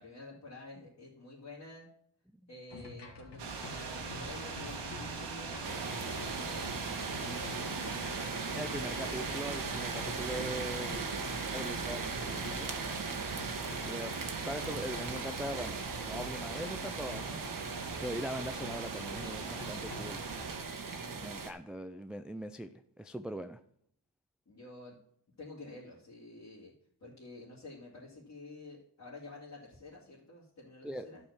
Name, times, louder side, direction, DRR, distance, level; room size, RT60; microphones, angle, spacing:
voice 1, 0.0-1.9 2.5-9.5 10.6-12.2 13.5-13.8 24.5-25.0 25.4-26.7 27.0-31.2, left 2 dB, 40° left, -7 dB, 2.4 m, -50 dB
sound 1, 2.7-20.6, left 2 dB, 75° left, 2.0 m, -50 dB
sound 2, 3.4-20.6, right 4 dB, 85° right, 1.6 m, -42 dB
sound 3, 5.6-21.5, right 4 dB, 50° right, 1.3 m, -39 dB
voice 2, 8.6-11.0 11.5-13.0 13.8-14.2 14.4-17.5 18.0-20.2 21.2-23.6 30.8-31.1, equal, ahead, 9 dB, 0.3 m, -41 dB
12.0 x 4.3 x 7.1 m, 0.69 s
wide cardioid pair, 115°, 41 cm